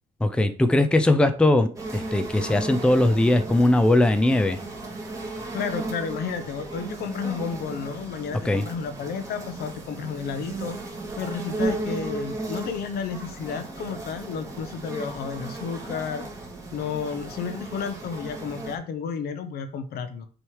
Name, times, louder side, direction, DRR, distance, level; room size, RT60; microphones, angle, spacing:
voice 1, 0.2-4.6 8.4-8.6, left 1 dB, 5° left, 9 dB, 0.5 m, -20 dB
sound 1, 1.8-18.8, right 2 dB, 20° right, 1.8 m, -35 dB
voice 2, 5.5-10.8 11.2-16.3 16.7-20.3, left 6 dB, 70° left, 9 dB, 0.9 m, -32 dB
6.2 x 3.2 x 4.7 m, 0.39 s
cardioid pair, 110°, 17 cm